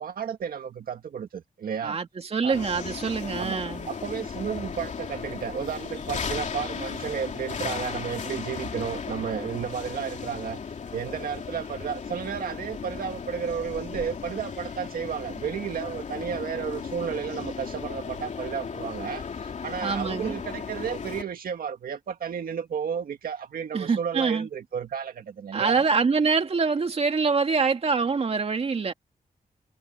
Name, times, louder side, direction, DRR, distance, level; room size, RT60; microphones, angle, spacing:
voice 1, 0.0-2.0 2.4-2.6 3.4-3.6 3.9-10.6 10.9-25.9, right 7 dB, 85° right, 1.9 m, -32 dB
voice 2, 1.8-3.9 19.8-20.4 23.7-24.5 25.5-28.9, right 5 dB, 45° right, 2.1 m, -25 dB
sound 1, 2.5-21.2, left 6 dB, 55° left, 2.9 m, -36 dB
wide cardioid pair, 150°, 15 cm